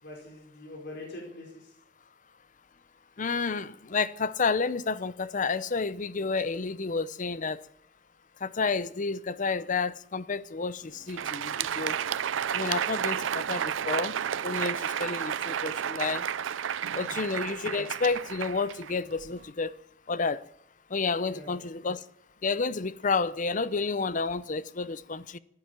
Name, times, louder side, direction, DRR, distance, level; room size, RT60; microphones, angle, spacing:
voice 1, 0.0-1.7 17.0-17.3 21.2-21.5, left 1 dB, 60° left, 4.7 m, -44 dB
voice 2, 3.2-7.6 8.4-12.0 12.5-14.1 14.4-16.3 16.9-19.7 20.1-20.4 20.9-22.0 22.4-25.4, left 4 dB, 40° left, 0.7 m, -30 dB
Crowd, 11.0-19.4, right 8 dB, 80° right, 0.5 m, -32 dB
15.0 x 10.5 x 7.4 m
head